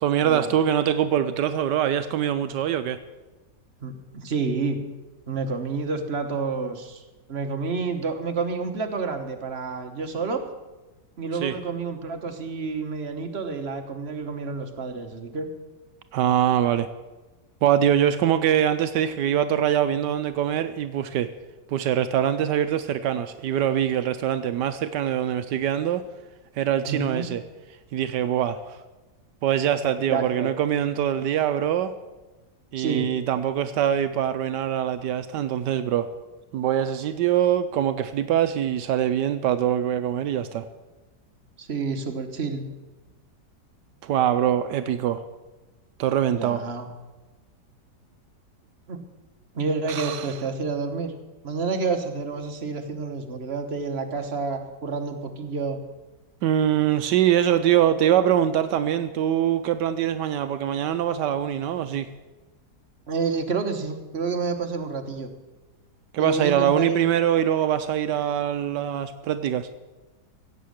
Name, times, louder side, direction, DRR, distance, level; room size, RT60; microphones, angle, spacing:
voice 1, 0.0-3.0 11.4-11.6 16.1-16.9 17.6-21.3 21.7-26.0 26.6-27.4 27.9-28.8 29.4-31.9 32.7-36.1 36.5-40.7 44.0-45.2 46.0-46.6 49.9-50.3 56.4-62.1 66.1-69.7, right 10 dB, 75° right, 11 dB, 1.2 m, -23 dB
voice 2, 3.8-4.8 5.3-7.0 7.3-10.4 11.2-15.5 26.9-27.3 30.1-30.5 32.8-33.1 41.6-42.7 46.3-46.9 48.9-49.0 49.5-51.1 51.4-55.8 63.1-65.3 66.2-67.1, right 4 dB, 40° right, 5 dB, 1.3 m, -29 dB
16.0 x 8.3 x 6.4 m, 1.2 s
omnidirectional pair, 1.9 m